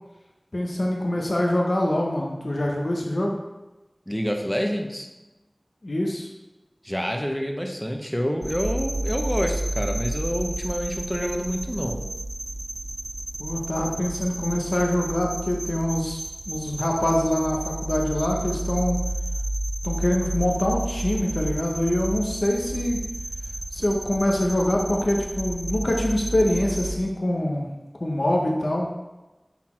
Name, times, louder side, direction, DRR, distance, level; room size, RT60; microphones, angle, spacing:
voice 1, 0.5-3.4 5.8-6.3 13.4-16.2 16.5-19.0 19.8-23.0 23.7-27.7 28.0-28.9, left 1 dB, 65° left, -1 dB, 0.7 m, -24 dB
voice 2, 4.1-5.1 6.8-12.0, equal, 10° left, 3 dB, 0.8 m, -27 dB
sound 1, 8.4-27.0, right 1 dB, 55° right, 0.4 m, -31 dB
6.0 x 4.1 x 4.3 m, 1.1 s
wide cardioid pair, 50°, 0 cm